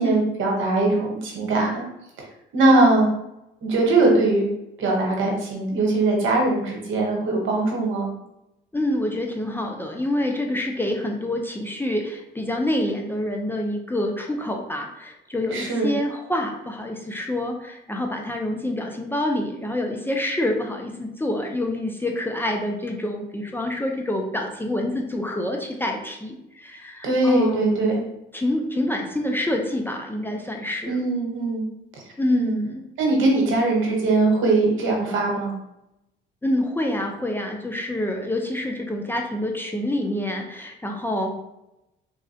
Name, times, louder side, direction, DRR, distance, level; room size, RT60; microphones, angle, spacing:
voice 1, 0.0-1.8 2.5-3.1 3.6-4.5 4.8-8.1 15.5-15.9 27.0-28.0 30.8-31.6 32.3-32.6 33.0-35.5, right 2 dB, 80° right, -1 dB, 0.9 m, -21 dB
voice 2, 8.7-28.1 28.3-31.0 32.2-32.8 36.4-41.3, left 1 dB, 10° left, 1 dB, 0.4 m, -27 dB
3.5 x 2.1 x 2.6 m, 0.86 s
cardioid pair, 90°, 20 cm